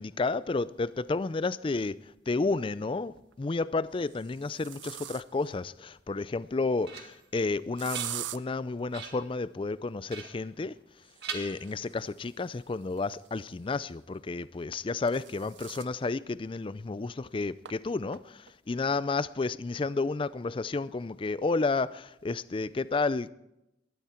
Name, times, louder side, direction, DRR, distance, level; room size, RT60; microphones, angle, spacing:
voice 1, 0.0-2.0 2.3-10.7 11.3-23.3, left 3 dB, 30° left, 0.4 m, -31 dB
sound 1, 1.4-1.5 2.9-3.4 4.0-5.5 7.8-8.4 11.0-13.6 14.6-16.0 16.4-16.5 16.9-17.0 17.6-17.7 18.1-18.5, right 13 dB, 90° right, 0.5 m, -43 dB
sound 2, 6.3-7.3 7.7-8.5 8.9-9.3 10.1-10.9 11.2-12.2, right 6 dB, 65° right, 2.0 m, -43 dB
20.0 x 13.0 x 4.4 m
head